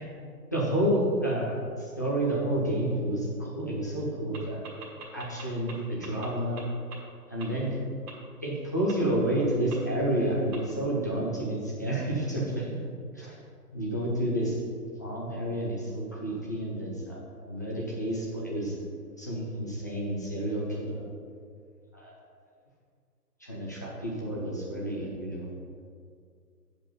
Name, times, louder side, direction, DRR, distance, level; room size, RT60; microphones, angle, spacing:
voice 1, 0.5-4.6 5.1-6.6 7.3-7.7 8.4-12.7 13.2-13.4 13.7-14.6 15.0-18.7 19.2-21.0 21.9-22.1 23.4-25.5, right 1 dB, 10° left, -6 dB, 0.5 m, -30 dB
sound 1, 4.3-4.4 4.6-5.7 6.0-6.3 6.6-6.7 6.9-7.0 7.4-7.5 8.1-8.2 8.9-9.0 9.7-9.8 10.5-10.6, right 5 dB, 25° right, 1.6 m, -42 dB
8.7 x 5.3 x 5.5 m, 2.2 s
figure-of-eight pair, 140°, 48 cm